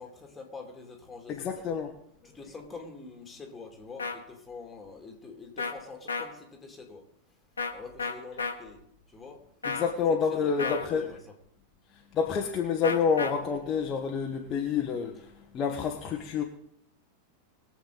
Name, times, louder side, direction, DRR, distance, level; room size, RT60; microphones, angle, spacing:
voice 1, 0.0-1.5 2.2-7.0 7.7-9.4 10.3-11.3, left 4 dB, 15° left, 2.8 m, -45 dB
voice 2, 1.4-1.9 9.7-11.0 12.1-16.4, left 6 dB, 30° left, 1.3 m, -28 dB
sound 1, 4.0-4.2 5.6-5.7 6.1-6.3 7.6-7.7 8.0-8.5 9.6-9.9 10.6-10.9 12.8-13.3, left 4 dB, 75° left, 1.3 m, -31 dB
21.5 x 7.8 x 4.0 m
figure-of-eight pair, 90°, 0 cm